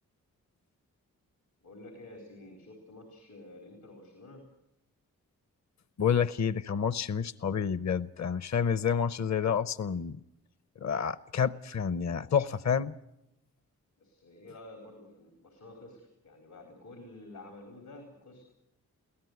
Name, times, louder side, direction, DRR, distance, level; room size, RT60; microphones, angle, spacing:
voice 1, 1.6-4.5 14.0-18.4, left 2 dB, 85° left, 3 dB, 4.1 m, -50 dB
voice 2, 6.0-10.2 10.8-12.9, left 7 dB, 50° left, 16 dB, 0.8 m, -29 dB
23.5 x 16.5 x 8.0 m, 0.86 s
supercardioid pair, 40°, 35 cm